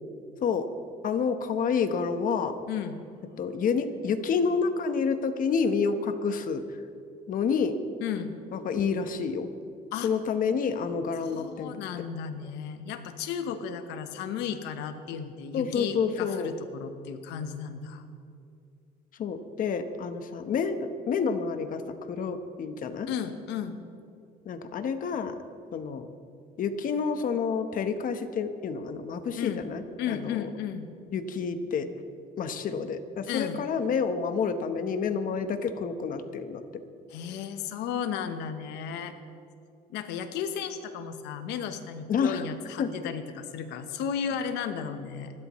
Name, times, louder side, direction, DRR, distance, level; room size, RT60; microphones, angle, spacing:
voice 1, 1.0-2.6 3.4-6.6 7.3-7.8 8.5-9.5 10.0-11.8 15.5-16.5 19.2-23.1 24.4-25.4 25.7-26.1 26.6-30.5 31.1-31.9 32.4-36.6 42.1-42.4 42.8-42.9, left 5 dB, 55° left, 8 dB, 1.2 m, -29 dB
voice 2, 2.7-3.0 8.0-8.5 9.9-10.1 11.2-18.0 23.1-23.8 29.4-29.6 30.0-30.9 33.3-33.6 37.1-39.1 39.9-45.3, left 8 dB, 90° left, 8 dB, 1.1 m, -34 dB
26.5 x 12.0 x 3.2 m, 2.4 s
cardioid pair, 110°, 17 cm